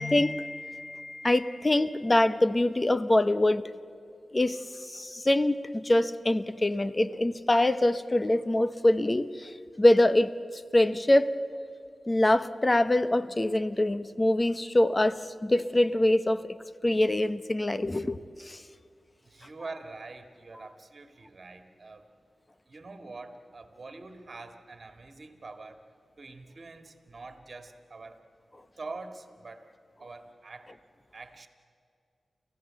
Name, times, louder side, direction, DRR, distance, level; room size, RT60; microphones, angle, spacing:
voice 1, 0.0-3.6 4.3-4.6 4.9-10.3 10.7-11.3 12.1-16.5 16.8-18.6, left 1 dB, 25° left, 13 dB, 0.9 m, -24 dB
voice 2, 19.2-22.1 22.7-25.8 26.2-28.2 28.8-29.7 30.0-30.7 31.1-31.5, right 3 dB, 50° right, 7 dB, 2.0 m, -45 dB
29.0 x 15.0 x 7.6 m, 2.3 s
cardioid pair, 55°, 0 cm